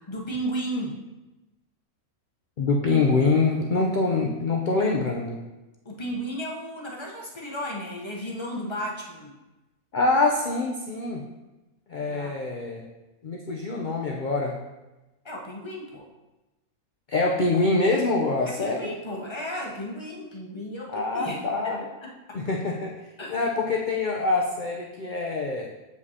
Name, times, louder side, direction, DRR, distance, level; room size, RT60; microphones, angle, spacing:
voice 1, 0.1-1.0 5.8-9.4 12.0-12.3 15.2-16.1 18.5-21.5 22.0-22.4 23.2-23.4, equal, 25° left, -2 dB, 0.8 m, -34 dB
voice 2, 2.6-5.4 9.9-11.2 11.9-12.8 13.2-14.5 17.1-18.9 20.9-21.8 22.3-22.9 23.3-25.7, left 3 dB, 70° left, 0 dB, 0.4 m, -25 dB
8.0 x 5.1 x 2.8 m, 1.1 s
omnidirectional pair, 1.6 m